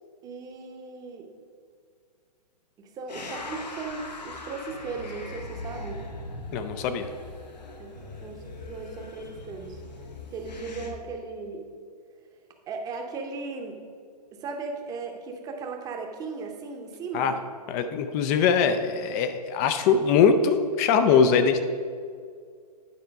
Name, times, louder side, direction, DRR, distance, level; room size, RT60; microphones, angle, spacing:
voice 1, 0.2-1.3 2.8-6.0 7.8-7.9 8.2-9.8 10.3-11.6 12.7-13.8 14.3-17.4, right 4 dB, 15° right, 3 dB, 0.8 m, -37 dB
sound 1, 3.1-10.9, left 2 dB, 90° left, 1.2 m, -40 dB
voice 2, 6.5-7.1 17.1-17.3 17.7-21.6, left 6 dB, 25° left, 9 dB, 0.4 m, -22 dB
9.3 x 4.4 x 5.3 m, 2.1 s
hypercardioid pair, 140°, 21 cm